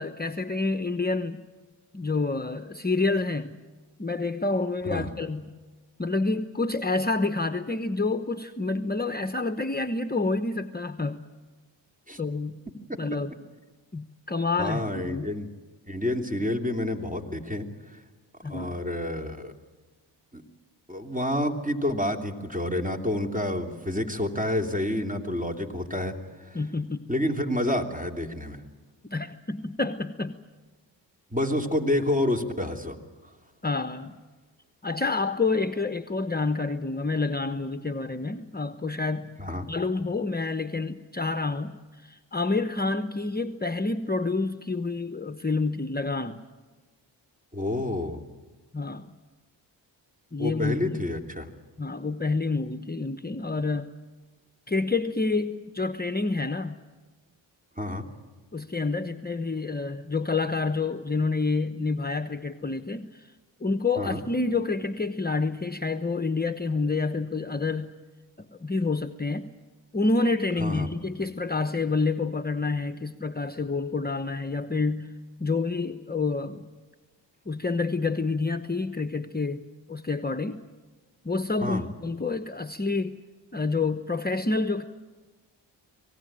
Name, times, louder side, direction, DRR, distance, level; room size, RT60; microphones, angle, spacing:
voice 1, 0.0-1.4 1.9-3.6 4.0-5.6 6.0-11.2 12.2-12.6 13.0-13.3 13.9-15.3 18.4-18.8 26.5-27.1 29.0-30.4 33.6-34.2 34.8-39.4 39.7-46.4 48.7-49.1 50.3-51.1 51.8-53.9 54.7-56.8 58.5-63.3 63.6-68.0 68.4-69.5 69.9-75.1 75.4-76.7 77.5-80.6 81.2-83.2 83.5-84.8, left 3 dB, 20° left, 9 dB, 1.0 m, -28 dB
voice 2, 14.6-15.5 15.9-18.0 18.4-19.5 20.3-20.4 20.9-26.6 27.1-28.6 31.3-33.0 39.4-39.7 47.5-48.3 50.4-51.5 57.8-58.1 64.0-64.2 70.6-70.9 81.6-81.8, left 1 dB, 15° right, 4 dB, 2.9 m, -29 dB
25.5 x 18.5 x 8.9 m, 1.3 s
cardioid pair, 45°, 47 cm